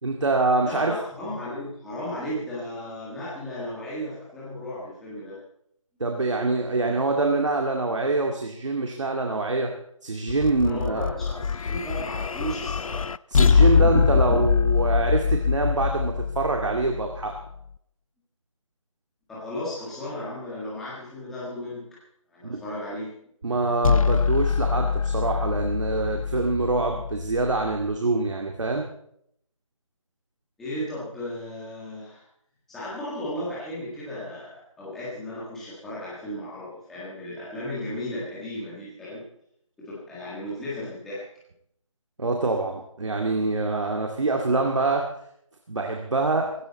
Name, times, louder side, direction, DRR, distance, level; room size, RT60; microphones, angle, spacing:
voice 1, 0.0-0.9 6.0-9.8 10.0-11.1 13.3-17.3 22.4-22.6 23.4-28.9 42.2-45.1 45.7-46.6, right 3 dB, 60° right, 2 dB, 2.2 m, -25 dB
voice 2, 0.6-5.4 10.6-13.0 19.3-21.9 22.3-23.2 30.6-32.2 32.7-39.2 39.8-41.2, left 1 dB, ahead, -10 dB, 1.6 m, -35 dB
sound 1, 10.3-17.6 23.8-27.9, left 6 dB, 90° left, 0.5 m, -24 dB
17.5 x 17.0 x 4.1 m, 0.71 s
figure-of-eight pair, 180°, 17 cm